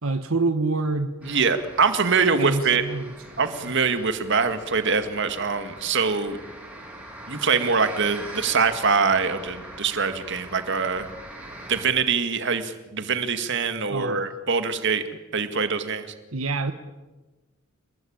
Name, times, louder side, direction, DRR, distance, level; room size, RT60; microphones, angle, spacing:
voice 1, 0.0-1.1 2.4-3.1 3.4-3.6 13.9-14.3 16.3-16.7, right 3 dB, 80° right, 8 dB, 1.3 m, -26 dB
sound 1, 1.2-11.8, right 1 dB, 10° right, 7.6 m, -42 dB
voice 2, 1.2-2.8 3.4-6.4 7.3-11.1 11.7-15.0 15.3-16.1, right 5 dB, 60° right, 9 dB, 2.1 m, -23 dB
28.0 x 21.0 x 8.8 m, 1.2 s
head